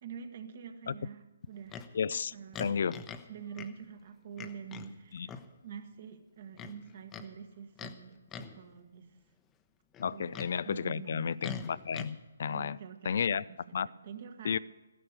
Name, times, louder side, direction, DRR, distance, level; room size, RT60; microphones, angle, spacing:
voice 1, 0.0-2.0 2.3-9.2 10.1-10.4 10.6-11.3 12.5-13.4 13.8-14.6, right 7 dB, 45° right, 1.5 m, -46 dB
Livestock farm animals working animals, 1.7-1.9 2.5-3.3 3.5-3.7 4.4-4.9 5.3-5.5 6.5-7.3 7.8-8.0 8.3-8.6 9.9-10.5 11.4-12.1, left 6 dB, 15° left, 0.9 m, -43 dB
voice 2, 1.9-2.3 2.6-3.0 5.1-5.3 10.0-12.8 13.0-13.4 13.7-13.9 14.4-14.6, left 7 dB, 55° left, 0.4 m, -32 dB
14.0 x 11.0 x 6.9 m
figure-of-eight pair, 135°, 0 cm